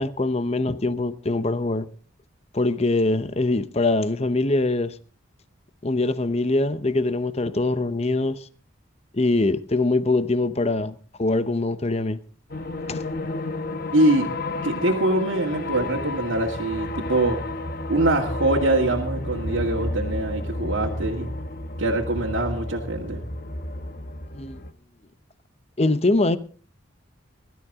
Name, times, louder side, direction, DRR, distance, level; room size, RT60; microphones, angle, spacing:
voice 1, 0.0-1.9 2.5-4.9 5.8-8.4 9.1-12.2 12.9-13.0 24.3-24.6 25.8-26.4, left 2 dB, 30° left, 0.8 m, -23 dB
sound 1, 12.5-24.7, left 2 dB, 45° left, 1.1 m, -31 dB
voice 2, 13.9-14.3 14.6-17.4 17.9-21.3 21.8-23.3, right 1 dB, 80° right, 2.2 m, -23 dB
21.0 x 12.5 x 3.7 m
head